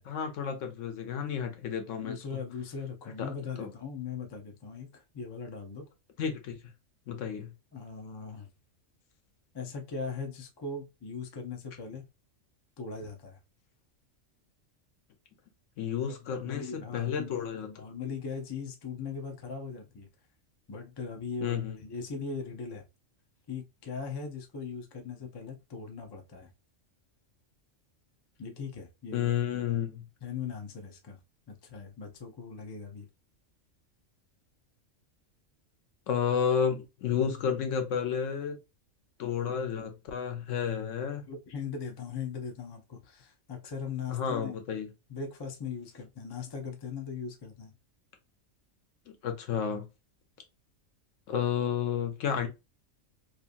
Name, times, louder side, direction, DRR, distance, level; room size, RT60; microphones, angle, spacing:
voice 1, 0.1-2.2 3.2-3.3 3.6-3.7 6.2-6.6 7.1-7.5 15.8-17.7 21.4-21.8 29.1-30.1 36.1-38.6 39.2-41.2 44.1-44.9 49.2-49.9 51.3-52.5, left 7 dB, 75° left, 1.0 m, -31 dB
voice 2, 1.9-5.9 7.7-8.5 9.5-12.1 12.8-13.4 16.3-20.1 20.7-22.8 23.5-26.5 28.4-29.3 30.2-31.2 31.5-33.1 41.2-44.6 45.1-47.7, left 5 dB, 40° left, 0.3 m, -39 dB
2.8 x 2.4 x 2.5 m
omnidirectional pair, 1.3 m